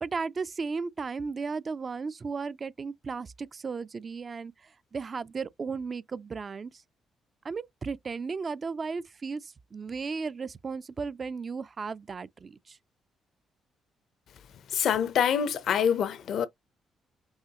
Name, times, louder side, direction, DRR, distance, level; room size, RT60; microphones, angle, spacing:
voice 1, 0.0-4.5 4.9-6.7 7.4-12.8, right 4 dB, 40° right, 0.3 m, -35 dB
voice 2, 14.7-16.5, left 8 dB, 70° left, 0.6 m, -25 dB
5.5 x 2.8 x 2.9 m
cardioid pair, 90°, 0 cm